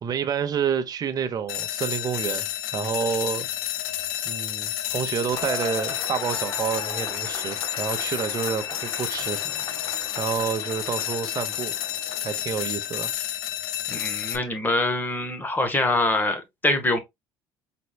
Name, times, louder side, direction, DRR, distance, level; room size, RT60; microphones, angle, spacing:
voice 1, 0.0-3.5 4.2-9.4 10.2-11.7 12.2-13.1, right 7 dB, 40° right, 1.0 m, -29 dB
sound 1, 1.5-14.4, left 12 dB, 85° left, 0.6 m, -30 dB
Cheering / Applause / Crowd, 5.3-12.6, left 4 dB, 40° left, 1.8 m, -38 dB
voice 2, 13.9-17.0, left 2 dB, 20° left, 1.4 m, -24 dB
4.5 x 4.1 x 2.4 m
supercardioid pair, 100°, 10 cm